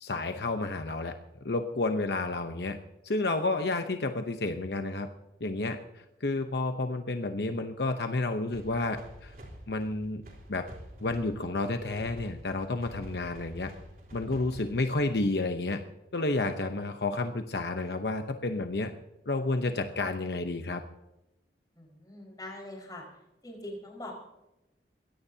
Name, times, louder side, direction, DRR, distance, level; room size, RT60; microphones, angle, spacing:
voice 1, 0.0-1.1 1.4-2.8 3.0-5.1 5.4-9.3 9.7-10.2 10.5-10.7 11.0-13.7 14.1-15.8 16.1-18.9 19.3-20.8, left 2 dB, 65° left, 6 dB, 0.9 m, -30 dB
sound 1, 8.5-15.3, equal, 55° right, 3.9 m, -48 dB
voice 2, 21.8-23.0 23.4-24.1, left 1 dB, 20° left, -1 dB, 5.2 m, -42 dB
22.5 x 17.0 x 2.9 m, 0.92 s
head